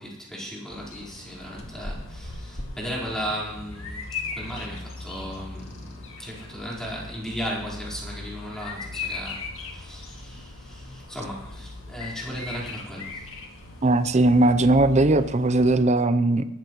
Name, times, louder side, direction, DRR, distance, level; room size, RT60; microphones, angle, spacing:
voice 1, 0.0-4.1 4.3-13.3, equal, 5° left, -5 dB, 4.3 m, -36 dB
Bird vocalization bird call bird song, 0.7-15.8, left 3 dB, 65° left, 2.2 m, -38 dB
voice 2, 13.8-16.4, right 2 dB, 35° right, 12 dB, 0.6 m, -19 dB
20.0 x 13.0 x 3.1 m, 0.81 s
head